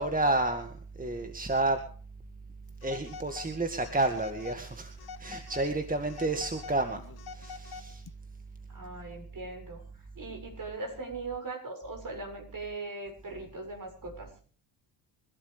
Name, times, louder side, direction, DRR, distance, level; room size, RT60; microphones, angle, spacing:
voice 1, 0.0-1.8 2.8-4.9 5.2-7.0 7.3-8.0, right 2 dB, 20° right, 6 dB, 2.0 m, -30 dB
Telephone, 2.8-3.5 3.9-4.6 5.0-5.7 6.1-8.1, left 6 dB, 50° left, 1.2 m, -45 dB
voice 2, 8.7-14.3, right 3 dB, 45° right, 4 dB, 7.0 m, -40 dB
26.0 x 12.5 x 3.4 m, 0.42 s
supercardioid pair, 60°, 47 cm